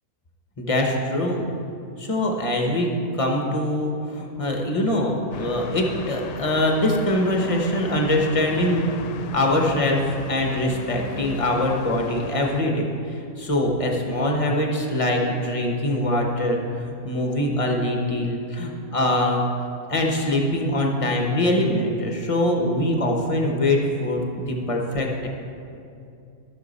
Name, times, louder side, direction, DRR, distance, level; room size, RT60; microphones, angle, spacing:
voice 1, 0.6-1.5 2.0-2.9 3.2-8.9 9.3-10.0 10.3-16.6 17.0-19.4 19.9-25.3, left 1 dB, 25° left, 1 dB, 0.9 m, -23 dB
sound 1, 5.3-12.6, left 6 dB, 80° left, 1.2 m, -36 dB
14.0 x 6.6 x 4.1 m, 2.6 s
omnidirectional pair, 1.8 m